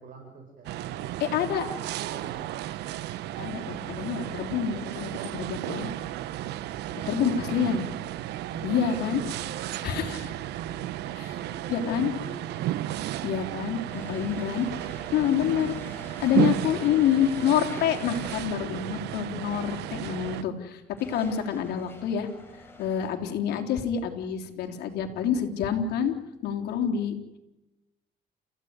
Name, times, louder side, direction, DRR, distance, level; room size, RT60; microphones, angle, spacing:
voice 1, 0.0-2.4 6.8-7.9 8.5-12.9, right 5 dB, 55° right, 2 dB, 7.0 m, -44 dB
sound 1, 0.6-20.4, right 13 dB, 80° right, 1.1 m, -33 dB
voice 2, 1.2-1.7 3.4-5.9 7.1-7.8 8.6-9.2 9.8-10.2 11.7-12.1 13.2-14.7 15.1-15.7 16.2-22.3 22.8-26.1 26.4-27.1, left 8 dB, 75° left, 3 dB, 3.7 m, -27 dB
sound 2, 13.9-18.9 19.8-19.9 20.6-23.1, left 2 dB, 15° left, 6.7 m, -46 dB
29.5 x 15.5 x 9.7 m, 0.98 s
cardioid pair, 110°, 17 cm